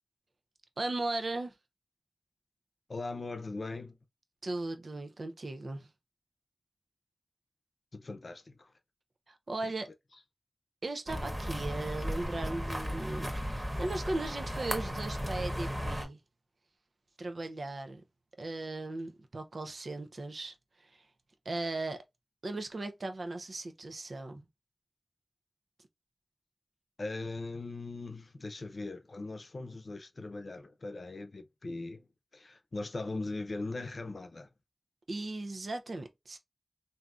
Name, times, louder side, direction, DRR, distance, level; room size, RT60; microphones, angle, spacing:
voice 1, 0.8-1.5 4.4-5.9 9.3-9.9 10.8-16.2 17.2-18.0 18.4-21.1 21.4-22.0 22.4-24.5 35.1-36.4, right 2 dB, 70° right, 0.6 m, -37 dB
voice 2, 2.9-4.0 7.9-8.7 27.0-32.1 32.3-34.5, left 3 dB, 70° left, 0.6 m, -40 dB
sound 1, 11.1-16.1, equal, 15° right, 1.1 m, -35 dB
3.5 x 2.7 x 2.4 m
wide cardioid pair, 60°, 0 cm